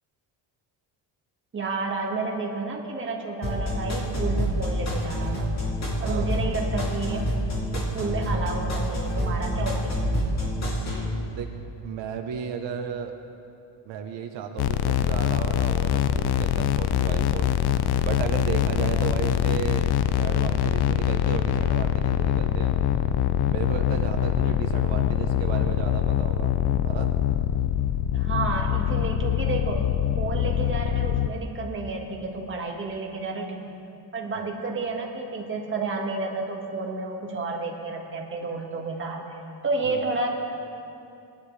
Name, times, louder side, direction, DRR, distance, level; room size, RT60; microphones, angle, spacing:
voice 1, 1.5-5.5 6.0-7.3 7.7-10.6 28.1-29.9 30.2-33.7 34.1-39.2 39.6-40.3, right 3 dB, 25° right, 0 dB, 1.8 m, -31 dB
sound 1, 3.4-11.1, equal, 35° left, 2.8 m, -27 dB
voice 2, 6.0-6.3 11.3-11.5 11.8-13.2 13.8-17.5 18.0-19.9 20.2-22.7 23.5-26.5 26.8-27.1 34.4-34.5 39.8-40.0, right 7 dB, 75° right, 4 dB, 1.0 m, -34 dB
sound 2, 14.6-31.3, left 11 dB, 60° left, 0.6 m, -24 dB
21.0 x 11.0 x 3.3 m, 2.7 s
cardioid pair, 140°, 44 cm